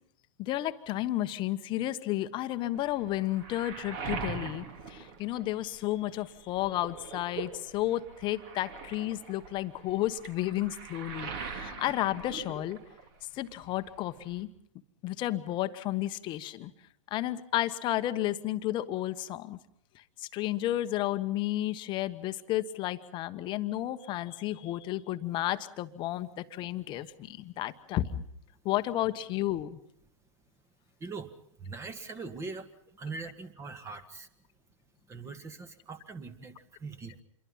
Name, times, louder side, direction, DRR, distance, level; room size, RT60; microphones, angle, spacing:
voice 1, 0.4-12.8 13.3-14.5 15.0-16.7 17.1-19.6 19.9-28.2 28.6-29.8, left 14 dB, 30° left, 11 dB, 1.2 m, -32 dB
Waves surf, 2.7-6.0 6.3-13.2 13.5-14.4, right 5 dB, 45° right, 3.3 m, -42 dB
voice 2, 31.6-32.7 33.0-34.3 35.1-37.2, right 4 dB, 15° right, 10 dB, 1.9 m, -41 dB
27.5 x 22.5 x 5.7 m, 0.70 s
hypercardioid pair, 115°, 16 cm